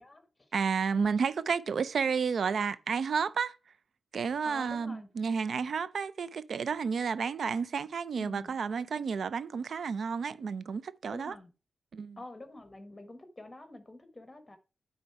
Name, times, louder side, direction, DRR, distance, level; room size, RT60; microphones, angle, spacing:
voice 1, 0.0-0.5 0.9-1.1 4.4-5.1 8.1-8.6 11.1-11.5 12.2-14.6, left 2 dB, 25° left, 1.2 m, -47 dB
voice 2, 0.5-3.6 4.1-11.4 11.9-12.2, right 6 dB, 70° right, 0.4 m, -31 dB
9.1 x 3.9 x 4.6 m
wide cardioid pair, 95°, 0 cm